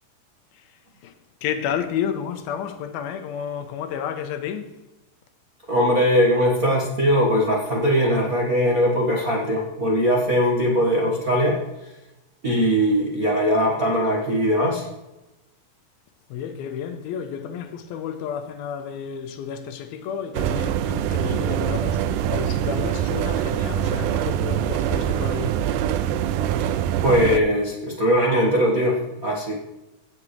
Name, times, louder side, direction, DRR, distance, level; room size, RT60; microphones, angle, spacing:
voice 1, 0.5-4.7 16.3-25.6, left 8 dB, 90° left, 2.8 m, -31 dB
voice 2, 5.7-11.6 12.4-14.9 26.6-26.7 27.0-29.5, equal, 45° right, 1.1 m, -20 dB
sound 1, 20.3-27.4, right 10 dB, 80° right, 1.9 m, -24 dB
17.0 x 7.4 x 3.2 m
omnidirectional pair, 4.2 m